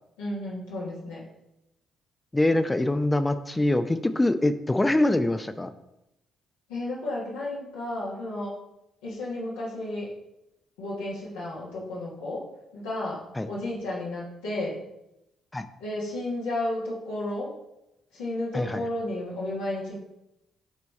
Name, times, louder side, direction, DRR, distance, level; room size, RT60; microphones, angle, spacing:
voice 1, 0.2-1.2 6.7-8.6 9.0-10.1 10.8-12.4 12.7-14.8 15.8-17.5 18.1-20.0, left 1 dB, 90° left, -7 dB, 1.6 m, -32 dB
voice 2, 2.3-5.7 13.4-13.5 15.5-15.7 18.5-18.8, left 1 dB, 15° left, 10 dB, 0.5 m, -24 dB
7.2 x 3.4 x 4.2 m, 0.88 s
hypercardioid pair, 55°, 0 cm